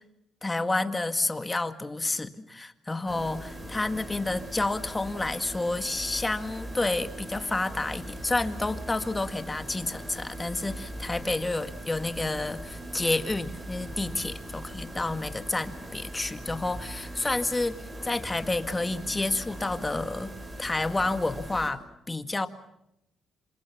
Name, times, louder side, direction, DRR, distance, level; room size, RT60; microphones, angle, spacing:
voice 1, 0.4-17.8 18.0-20.3 20.6-21.8 22.1-22.5, left 2 dB, 20° left, 9 dB, 1.9 m, -29 dB
sound 1, 3.1-21.7, right 1 dB, 20° right, 7.1 m, -40 dB
27.5 x 26.5 x 7.2 m, 0.85 s
cardioid pair, 90°, 0 cm